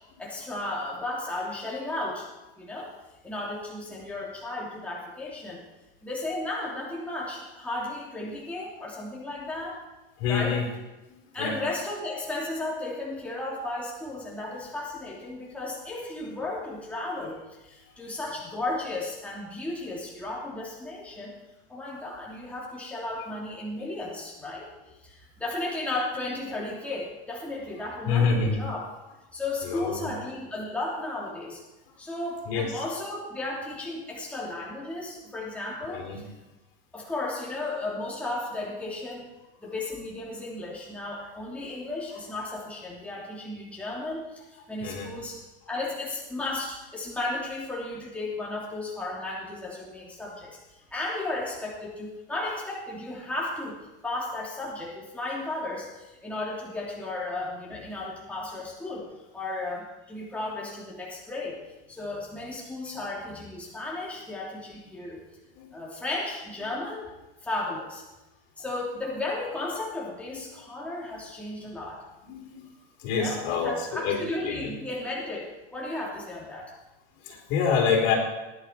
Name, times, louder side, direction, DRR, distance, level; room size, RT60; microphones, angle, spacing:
voice 1, 0.2-2.3 2.6-2.9 3.2-5.6 6.0-9.8 10.3-10.6 11.3-21.4 21.7-24.7 25.0-28.8 29.3-31.6 32.0-36.1 36.9-39.3 39.6-45.4 45.7-50.6 50.9-59.1 59.3-61.6 61.9-65.2 65.7-67.1 67.4-68.0 68.6-72.0 73.1-76.7, left 2 dB, 5° left, -5 dB, 3.2 m, -34 dB
voice 2, 10.2-10.7 11.1-11.6 28.1-28.6 29.6-30.1 32.5-32.7 35.9-36.3 44.8-45.1 65.6-65.7 70.3-70.4 72.2-72.7 73.0-74.2 74.4-74.7 77.2-78.2, left 5 dB, 55° left, 1 dB, 4.3 m, -27 dB
19.5 x 11.0 x 4.6 m, 1.1 s
supercardioid pair, 140°, 29 cm